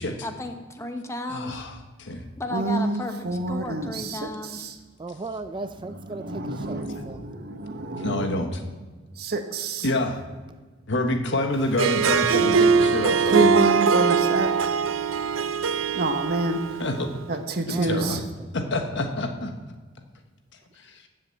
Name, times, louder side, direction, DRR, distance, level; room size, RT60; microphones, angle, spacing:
voice 1, 0.2-1.6 2.4-4.7, left 1 dB, 15° left, 6 dB, 1.0 m, -34 dB
voice 2, 1.3-2.2 8.0-8.5 9.8-10.2 10.9-13.4 16.8-17.1 17.7-18.2 18.5-19.5 20.8-21.1, left 1 dB, 65° left, 5 dB, 1.4 m, -27 dB
voice 3, 2.5-4.7 6.1-8.4 9.2-9.8 13.3-14.5 15.9-16.6 17.3-18.2, right 2 dB, 55° right, 6 dB, 1.2 m, -27 dB
voice 4, 5.0-7.2 17.7-18.5, right 3 dB, 25° right, 10 dB, 0.4 m, -37 dB
Harp, 11.6-17.1, right 5 dB, 85° right, 0.6 m, -22 dB
12.5 x 7.7 x 7.6 m, 1.3 s
head